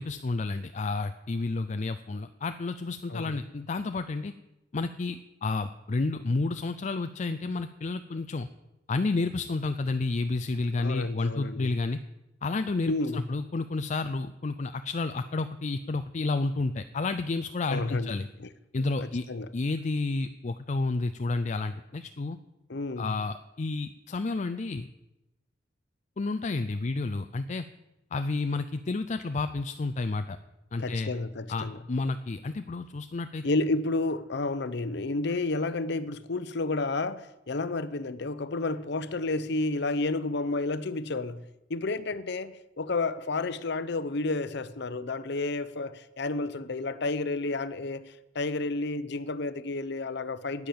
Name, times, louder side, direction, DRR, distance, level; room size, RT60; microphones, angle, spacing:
voice 1, 0.0-4.3 4.7-8.5 8.9-12.0 12.4-18.3 18.7-19.2 19.5-22.4 23.0-24.9 26.2-27.7 28.1-30.4 30.7-31.1 31.5-33.4, left 3 dB, 40° left, 0.5 m, -30 dB
voice 2, 10.8-11.7 12.9-13.3 17.7-18.1 18.4-18.5 19.0-19.5 22.7-23.1 30.8-31.8 33.4-41.4 41.7-50.7, left 3 dB, 65° left, 0.8 m, -31 dB
10.5 x 9.6 x 8.7 m
head